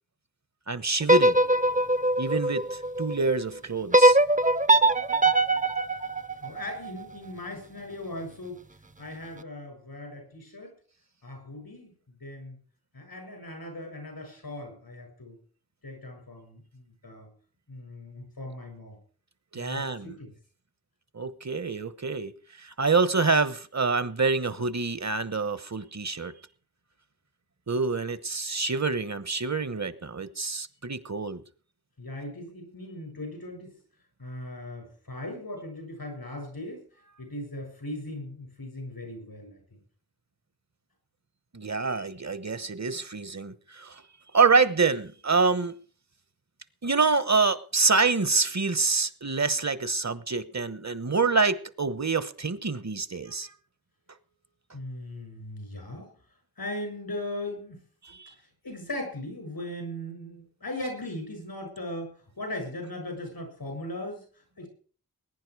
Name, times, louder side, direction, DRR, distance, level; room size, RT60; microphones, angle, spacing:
voice 1, 0.7-1.4 2.2-4.2 19.5-20.1 21.1-22.3 22.6-26.3 27.7-31.4 41.5-44.0 44.3-45.7 46.8-53.5 58.0-58.3, right 4 dB, 50° right, 1.1 m, -26 dB
sound 1, 1.0-3.2 3.9-7.1, right 2 dB, 20° right, 0.7 m, -22 dB
voice 2, 6.4-8.6 9.0-10.7 11.2-12.6 12.9-15.4 15.8-17.3 17.7-19.0 19.5-20.3 32.0-33.8 34.2-36.9 37.2-39.8 54.7-56.1 56.6-57.8 58.3-64.7, left 1 dB, 90° left, 6.8 m, -38 dB
20.5 x 10.0 x 4.8 m
wide cardioid pair, 40°, 35 cm